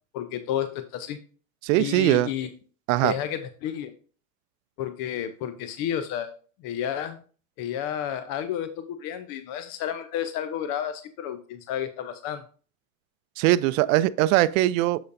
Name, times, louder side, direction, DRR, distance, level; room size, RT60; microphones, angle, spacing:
voice 1, 0.1-1.2 1.8-2.5 3.0-3.9 4.8-6.3 6.6-7.2 7.6-12.4, left 10 dB, 60° left, 0.7 m, -31 dB
voice 2, 1.6-2.3 2.9-3.1 13.4-15.0, right 15 dB, 80° right, 0.5 m, -21 dB
7.7 x 6.9 x 2.6 m
supercardioid pair, 115°, 39 cm